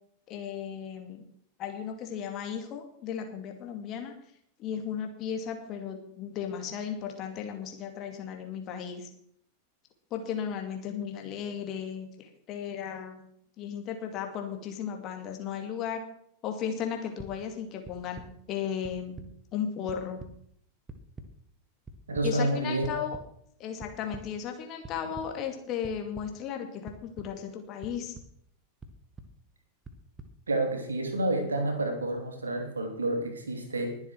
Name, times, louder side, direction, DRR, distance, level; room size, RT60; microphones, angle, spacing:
voice 1, 0.3-1.2 1.6-4.1 4.6-9.1 10.1-13.2 13.6-16.0 16.4-18.2 18.5-19.2 19.5-20.2 22.2-23.2 23.6-28.1, left 8 dB, 35° left, 4 dB, 2.4 m, -35 dB
sound 1, 17.2-17.3 17.8-18.3 18.8-19.3 19.6-20.3 20.9-21.3 21.9-22.3 22.8-23.2 23.8-24.2 24.8-25.3 25.8-26.3 26.9-27.3 27.8-28.3 28.8-29.3 29.8-30.3, right 3 dB, 15° right, 1.5 m, -44 dB
voice 2, 22.1-23.0 30.5-34.0, right 2 dB, 75° right, 4 dB, 3.0 m, -29 dB
21.0 x 7.3 x 4.7 m, 0.67 s
figure-of-eight pair, 90°, 0 cm